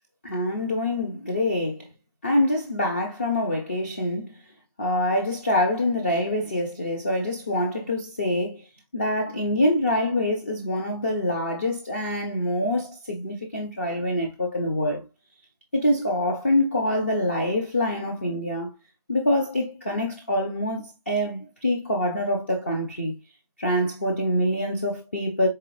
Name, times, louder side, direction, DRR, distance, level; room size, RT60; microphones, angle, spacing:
voice 1, 0.2-1.9 2.2-4.3 4.8-8.6 8.9-15.1 15.7-18.7 19.1-23.2 23.6-25.5, left 1 dB, 20° left, 0.4 m, -25 dB
4.6 x 3.8 x 2.9 m
figure-of-eight pair, 155°, 20 cm